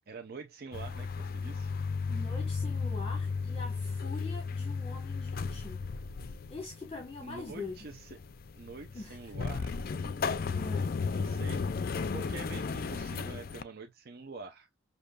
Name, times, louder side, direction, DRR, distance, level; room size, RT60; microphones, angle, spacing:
voice 1, 0.1-1.8 7.2-8.2 8.5-9.7 11.1-11.6 12.1-14.7, right 4 dB, 50° right, 0.5 m, -46 dB
sound 1, 0.7-13.6, left 4 dB, 50° left, 0.4 m, -34 dB
voice 2, 2.1-5.8 6.5-7.9 8.9-9.3 10.5-10.9, left 3 dB, 30° left, 1.1 m, -43 dB
6.6 x 2.7 x 2.2 m
head